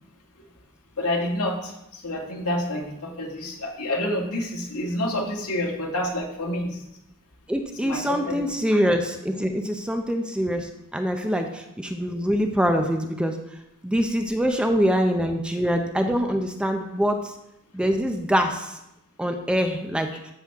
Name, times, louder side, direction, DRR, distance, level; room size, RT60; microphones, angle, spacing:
voice 1, 1.0-6.8 7.8-8.4, left 1 dB, 80° left, 0 dB, 2.0 m, -28 dB
voice 2, 7.5-13.3 13.8-17.3 17.7-18.8 19.2-20.1, equal, 5° right, 5 dB, 0.6 m, -24 dB
13.0 x 6.2 x 3.6 m, 0.86 s
head